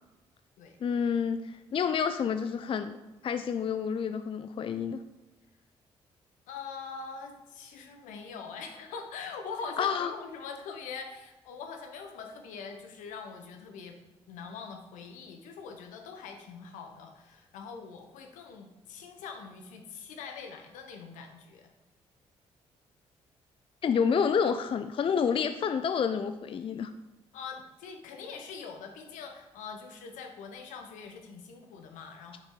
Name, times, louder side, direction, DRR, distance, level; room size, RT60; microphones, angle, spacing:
voice 1, 0.8-5.0 9.8-10.1 23.8-26.9, left 6 dB, 45° left, 10 dB, 0.4 m, -29 dB
voice 2, 6.5-14.0 14.3-21.7 27.3-32.4, left 5 dB, 80° left, 4 dB, 0.9 m, -43 dB
6.0 x 5.5 x 3.8 m, 1.0 s
supercardioid pair, 50°, 13 cm